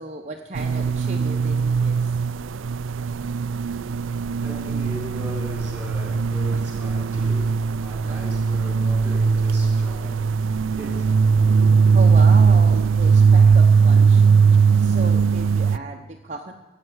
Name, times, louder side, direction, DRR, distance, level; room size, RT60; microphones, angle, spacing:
voice 1, 0.0-2.2 7.9-8.3 11.1-14.3 14.7-16.5, right 2 dB, 35° right, 0.9 m, -35 dB
sound 1, 0.6-15.8, right 5 dB, 85° right, 0.4 m, -19 dB
voice 2, 3.5-11.2, equal, 5° right, 4.2 m, -38 dB
16.0 x 8.2 x 9.5 m
head